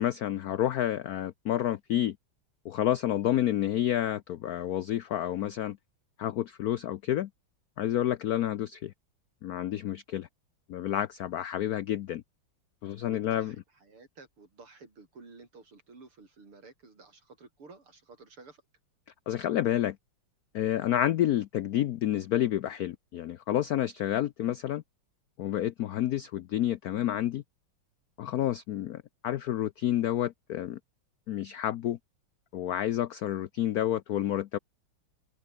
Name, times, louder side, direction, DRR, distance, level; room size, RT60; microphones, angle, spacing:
voice 1, 0.0-2.2 2.6-5.8 6.2-7.3 7.8-8.9 9.4-10.3 10.7-12.2 12.8-13.5 19.3-20.0 20.5-24.8 25.4-27.4 28.2-30.8 31.3-32.0 32.5-34.6, left 12 dB, 85° left, 0.8 m, -29 dB
voice 2, 13.0-18.6, right 3 dB, 90° right, 5.9 m, -52 dB
omnidirectional pair, 2.3 m